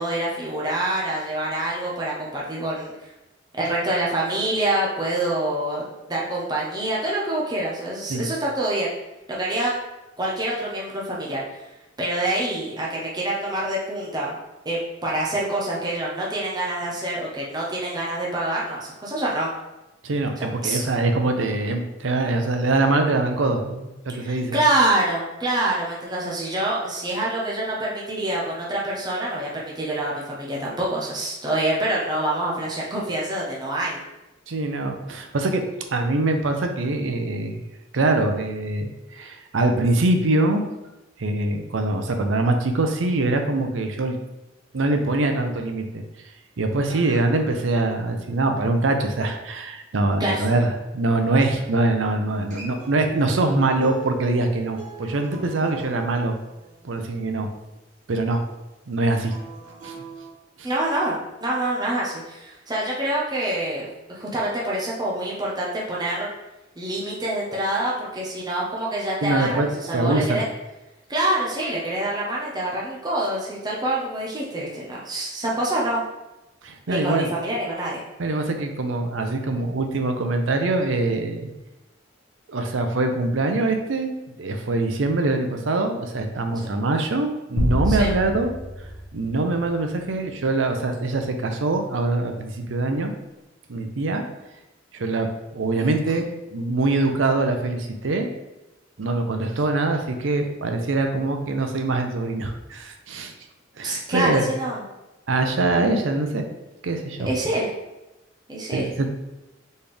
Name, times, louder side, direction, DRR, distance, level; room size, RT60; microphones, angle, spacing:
voice 1, 0.0-3.1 3.5-8.9 9.3-9.7 10.2-11.6 12.0-14.3 14.6-19.5 20.6-20.8 24.2-34.0 46.9-47.2 50.2-50.5 60.6-66.3 66.8-70.4 71.1-76.0 76.9-78.0 87.9-88.1 95.8-95.9 103.8-104.8 107.3-107.7 108.5-108.9, right 1 dB, 20° right, -5 dB, 0.8 m, -26 dB
voice 2, 20.0-24.6 34.5-35.6 35.9-37.6 37.9-40.7 41.2-44.2 44.7-46.0 46.6-56.4 56.8-57.5 58.1-58.4 58.9-59.3 59.8-60.0 60.6-60.7 69.2-70.4 76.6-77.3 78.2-81.5 82.5-88.5 89.1-93.1 93.7-94.2 94.9-98.3 99.0-103.3 103.8-104.4 105.3-106.4 106.8-107.3 108.7-109.1, right 2 dB, 85° right, 5 dB, 0.6 m, -23 dB
Acoustic guitar, 52.3-57.5 59.1-60.3, right 3 dB, 40° right, 1.4 m, -42 dB
sound 1, 87.6-90.2, equal, 65° left, 1.0 m, -27 dB
4.3 x 3.4 x 3.4 m, 0.99 s
head